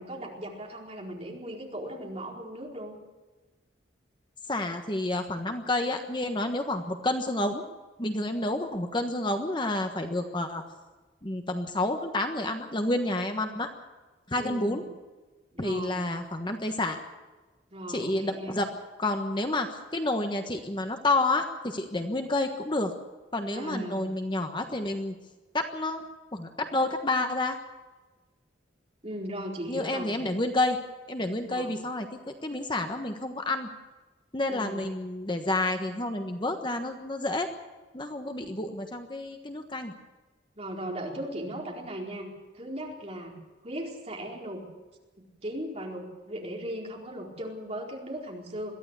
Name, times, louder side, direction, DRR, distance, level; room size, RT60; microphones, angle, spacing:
voice 1, 0.0-3.0 14.4-14.8 15.5-16.0 17.7-18.6 23.5-24.0 29.0-30.1 31.4-31.7 34.5-34.9 40.6-42.3 42.5-43.3 43.6-44.6 45.2-48.7, right 1 dB, 35° right, -1 dB, 4.5 m, -37 dB
voice 2, 4.5-7.6 8.0-10.6 11.2-13.7 14.3-14.8 15.6-17.0 17.9-18.7 19.0-22.9 23.3-25.1 25.5-26.1 26.3-27.6 29.7-30.8 31.1-33.7 34.3-37.5 37.9-39.9, left 2 dB, 25° left, 5 dB, 1.3 m, -29 dB
22.5 x 14.5 x 8.2 m, 1.2 s
head